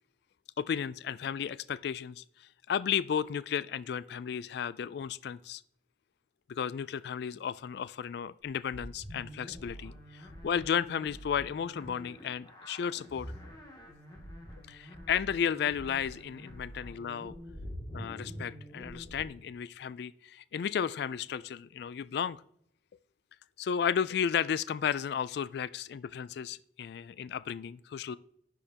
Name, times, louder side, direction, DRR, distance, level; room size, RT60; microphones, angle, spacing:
voice 1, 0.6-5.6 6.5-13.3 14.7-17.3 17.9-22.4 23.6-28.2, left 8 dB, 65° left, 18 dB, 0.3 m, -33 dB
sound 1, 8.7-19.3, equal, 25° left, 2.3 m, -46 dB
10.0 x 6.4 x 2.9 m, 0.69 s
head